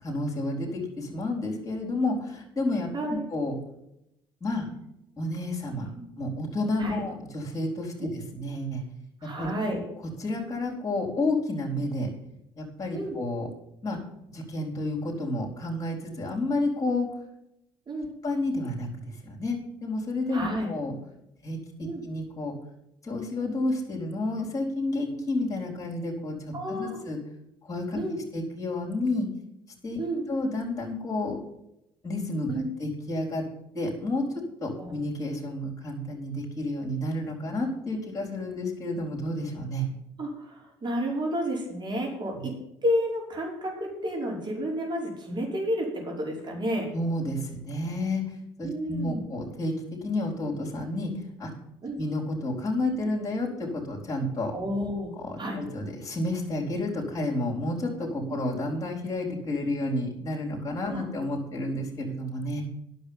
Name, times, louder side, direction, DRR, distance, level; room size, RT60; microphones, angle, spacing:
voice 1, 0.0-3.5 4.4-4.7 5.2-5.9 6.2-8.8 9.4-9.5 10.2-12.1 12.6-13.5 13.8-14.0 14.3-17.1 18.2-18.9 19.2-20.9 21.4-22.5 23.0-26.3 26.7-27.2 27.7-28.0 28.3-29.3 29.8-30.0 30.3-31.4 32.0-32.5 32.8-33.4 33.7-34.2 34.6-39.9 42.3-42.4 46.9-48.2 48.6-49.7 50.0-51.1 51.4-51.5 52.0-54.5 55.2-62.6, left 2 dB, 30° left, -3 dB, 4.4 m, -30 dB
voice 2, 2.9-3.2 6.8-7.0 8.0-8.1 9.2-9.8 12.9-13.2 17.9-18.1 20.3-20.7 21.8-22.0 26.5-27.0 27.9-28.2 30.0-30.3 32.5-32.7 34.8-34.9 40.2-42.5 42.8-46.9 48.6-49.3 51.8-52.0 54.5-55.6 58.3-58.4 60.9-61.0, equal, 40° right, -1 dB, 5.4 m, -31 dB
10.0 x 6.8 x 8.9 m, 0.82 s
supercardioid pair, 65°, 12 cm